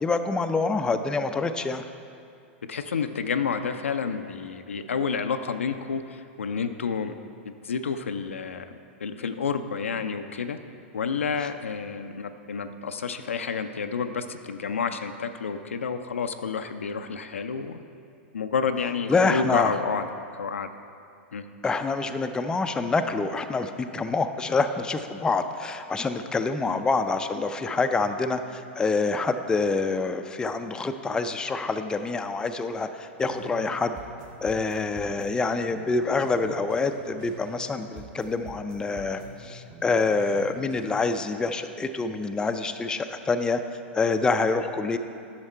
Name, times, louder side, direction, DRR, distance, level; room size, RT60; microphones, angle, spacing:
voice 1, 0.0-1.8 19.1-19.8 21.6-34.0 34.4-43.6 43.9-45.0, left 3 dB, 10° left, 8 dB, 0.4 m, -26 dB
voice 2, 2.7-7.2 7.5-8.7 9.0-10.6 10.9-17.8 18.3-20.1 20.3-20.7 21.3-21.5 26.7-26.8, left 5 dB, 90° left, 8 dB, 0.5 m, -30 dB
sound 1, 33.2-33.7 33.9-37.7 37.9-41.2, right 2 dB, 40° right, 1.3 m, -46 dB
9.8 x 6.4 x 4.4 m, 2.4 s
hypercardioid pair, 110°, 7 cm